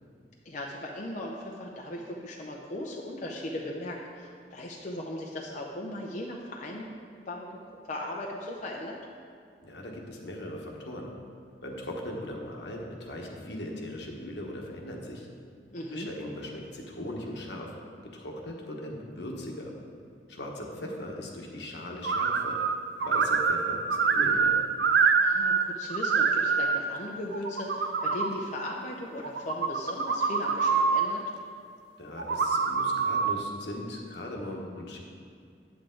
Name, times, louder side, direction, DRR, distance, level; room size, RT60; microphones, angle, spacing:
voice 1, 0.4-6.9 7.3-9.0 15.7-16.1 25.2-31.2, left 1 dB, 45° left, -1 dB, 0.7 m, -38 dB
voice 2, 9.6-11.1 11.6-15.3 15.9-17.7 18.1-19.7 20.3-22.6 23.0-24.5 32.0-35.0, left 1 dB, 75° left, 0 dB, 1.2 m, -39 dB
sound 1, 22.0-22.7 23.0-25.6 25.9-26.8 27.3-28.3 29.2-31.1 32.2-33.3, right 5 dB, 70° right, 0.5 m, -25 dB
8.9 x 8.1 x 3.8 m, 2.2 s
head